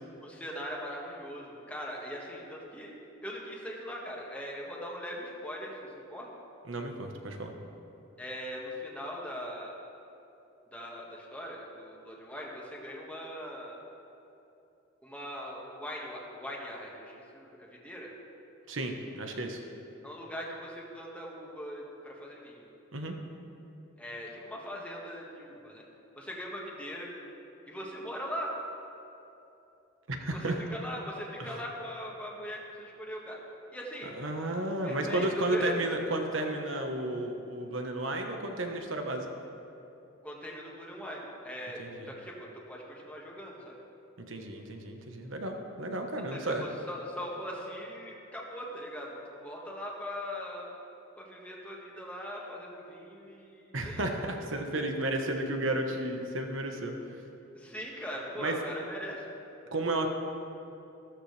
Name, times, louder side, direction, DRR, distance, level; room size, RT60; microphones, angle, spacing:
voice 1, 0.2-2.9 3.2-6.3 8.2-9.7 10.7-13.8 15.0-18.1 20.0-22.7 24.0-25.8 26.1-27.1 27.7-28.5 30.4-33.4 33.7-34.1 34.8-35.9 40.2-43.7 46.3-50.7 51.2-54.1 57.5-59.2, equal, 5° left, -3 dB, 1.7 m, -40 dB
voice 2, 6.6-7.5 18.7-19.6 22.9-23.1 30.1-30.5 31.4-31.6 34.0-39.2 41.8-42.1 44.3-46.6 53.7-57.2 58.4-58.6 59.7-60.1, right 1 dB, 70° right, 3 dB, 1.3 m, -33 dB
14.5 x 13.5 x 3.4 m, 2.9 s
head